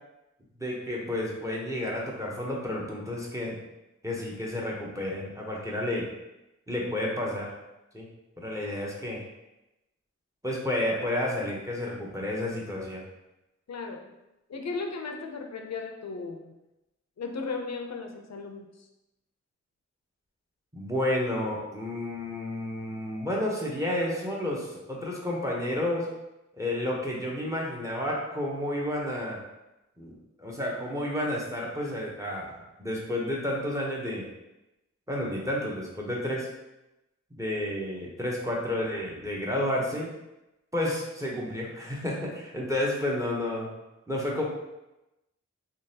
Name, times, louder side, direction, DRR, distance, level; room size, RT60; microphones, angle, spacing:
voice 1, 0.6-3.6 4.0-6.0 6.7-7.5 7.9-8.1 8.4-9.2 10.4-13.0 20.7-26.1 26.5-29.4 30.0-34.2 35.1-36.5 37.4-40.1 40.7-43.7 44.1-44.5, left 1 dB, 10° right, -3 dB, 0.8 m, -31 dB
voice 2, 13.7-14.1 14.5-16.5 17.2-18.9, left 4 dB, 65° left, 3 dB, 0.5 m, -36 dB
3.8 x 3.0 x 2.8 m, 0.95 s
wide cardioid pair, 95°, 29 cm